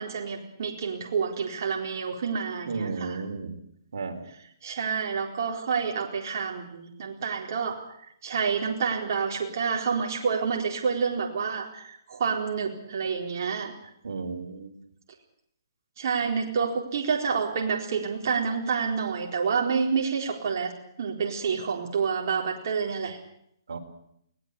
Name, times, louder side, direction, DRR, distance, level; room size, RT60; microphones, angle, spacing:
voice 1, 0.0-3.2 4.6-7.8 8.2-13.7 16.0-20.7 21.0-23.2, right 6 dB, 50° right, 0 dB, 4.2 m, -28 dB
voice 2, 2.7-3.5 3.9-4.2 14.0-14.7 23.7-23.8, right 4 dB, 75° right, 5 dB, 4.3 m, -33 dB
21.5 x 18.0 x 8.5 m, 0.72 s
hypercardioid pair, 150°, 2 cm